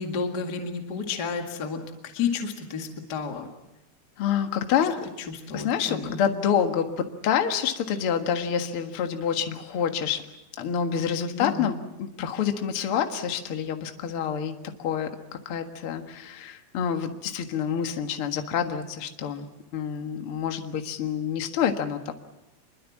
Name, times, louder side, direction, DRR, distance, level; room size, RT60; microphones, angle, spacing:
voice 1, 0.0-3.5 5.2-6.2 11.3-11.7, left 5 dB, 45° left, 4 dB, 1.3 m, -31 dB
voice 2, 4.2-5.0 5.5-10.2 10.6-14.5 14.8-19.5 19.7-22.1, left 8 dB, 80° left, 6 dB, 1.2 m, -27 dB
27.0 x 22.5 x 7.3 m, 0.95 s
omnidirectional pair, 5.2 m